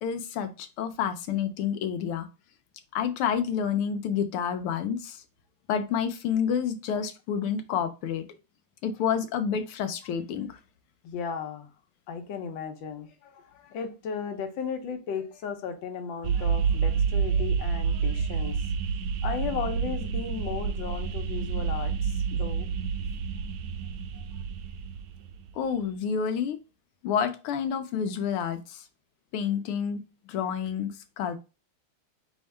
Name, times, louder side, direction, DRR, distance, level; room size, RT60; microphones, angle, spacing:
voice 1, 0.0-2.3 2.9-5.2 5.7-8.2 8.8-10.6 25.6-26.6 27.0-28.8 29.3-30.0 30.3-31.4, left 7 dB, 85° left, 1.5 m, -29 dB
voice 2, 11.0-11.7 12.1-18.6 19.2-22.7, left 6 dB, 70° left, 1.5 m, -35 dB
sound 1, 16.2-25.5, right 6 dB, 80° right, 0.9 m, -29 dB
4.5 x 3.5 x 3.2 m
omnidirectional pair, 2.4 m